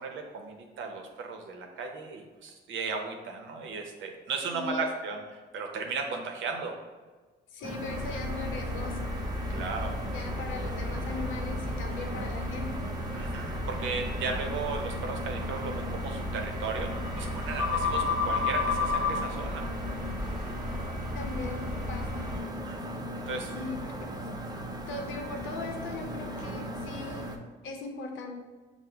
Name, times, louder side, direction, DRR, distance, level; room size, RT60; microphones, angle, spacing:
voice 1, 0.0-5.2 5.5-6.7 9.5-10.0 13.1-19.7 22.6-23.5, right 4 dB, 75° right, 3 dB, 0.7 m, -36 dB
voice 2, 4.5-4.9 7.5-9.3 9.5-9.7 10.1-12.8 21.1-22.3 23.5-24.1 24.9-27.3 27.6-28.4, left 3 dB, 80° left, 3 dB, 0.7 m, -39 dB
sound 1, 7.6-27.4, right 1 dB, 20° right, 0.5 m, -38 dB
sound 2, 7.9-22.4, left 3 dB, 5° right, 1.1 m, -33 dB
6.0 x 2.1 x 3.4 m, 1.3 s
cardioid pair, 90°, 20 cm